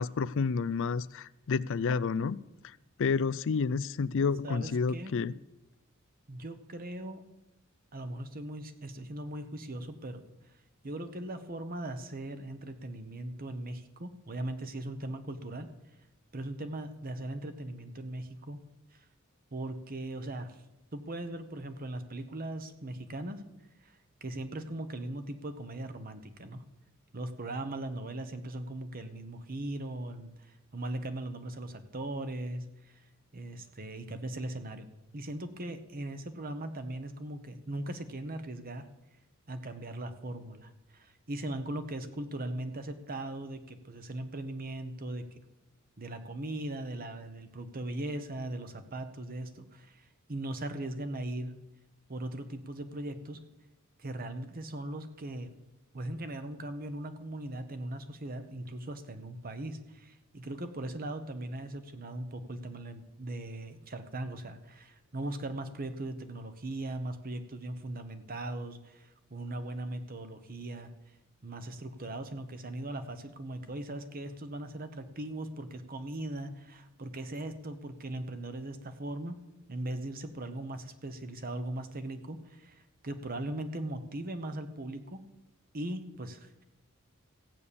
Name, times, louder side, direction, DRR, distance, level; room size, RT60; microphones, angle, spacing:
voice 1, 0.0-5.3, left 5 dB, 65° left, 0.4 m, -30 dB
voice 2, 4.4-5.1 6.3-7.2 7.9-10.2 10.8-15.7 16.3-18.6 18.9-19.0 19.5-20.6 20.9-23.4 23.8-26.6 27.1-33.0 33.3-34.9 35.1-38.9 39.5-45.4 46.0-51.5 52.1-53.4 54.0-55.5 55.9-70.9 71.4-79.4 79.7-85.2 85.7-86.6, right 1 dB, 45° right, 1.1 m, -39 dB
15.0 x 8.5 x 7.0 m
head